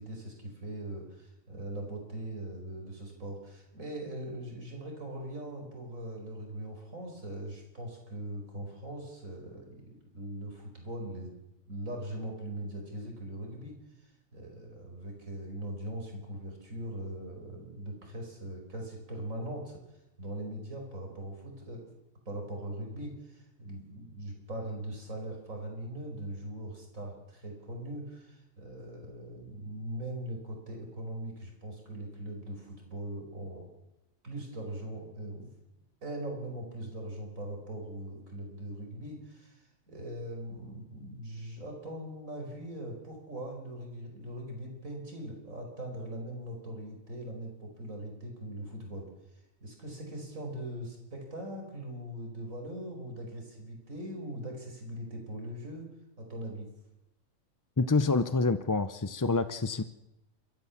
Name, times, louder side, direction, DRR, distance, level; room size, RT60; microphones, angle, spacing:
voice 1, 0.0-11.3 11.7-19.8 20.2-21.8 22.3-33.7 34.2-35.5 36.0-55.9 56.2-56.7, right 1 dB, 75° right, 2 dB, 5.5 m, -41 dB
voice 2, 57.8-59.8, left 3 dB, 25° left, 12 dB, 0.4 m, -27 dB
29.5 x 14.0 x 7.2 m, 0.92 s
omnidirectional pair, 1.4 m